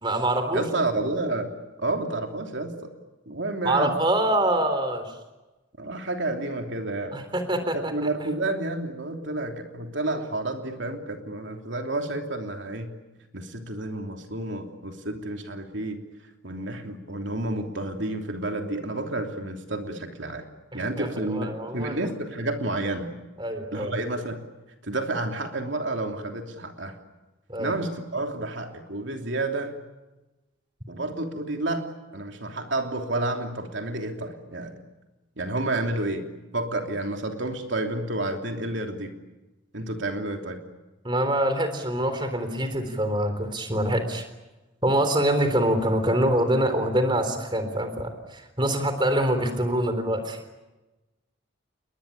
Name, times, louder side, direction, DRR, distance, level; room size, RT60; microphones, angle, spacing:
voice 1, 0.0-0.6 3.6-5.1 7.1-8.1 20.7-22.1 23.4-23.9 27.5-27.7 41.0-44.3 44.8-50.4, right 1 dB, 25° right, 8 dB, 3.7 m, -25 dB
voice 2, 0.5-1.5 1.8-2.9 3.3-4.0 5.8-7.2 7.7-12.9 13.3-16.0 16.4-20.4 20.7-23.1 23.7-24.4 24.8-27.0 27.6-29.7 30.9-34.8 35.4-36.3 36.5-39.1 39.7-40.6, right 2 dB, 70° right, 4 dB, 3.1 m, -30 dB
30.0 x 22.0 x 8.4 m, 1.1 s
head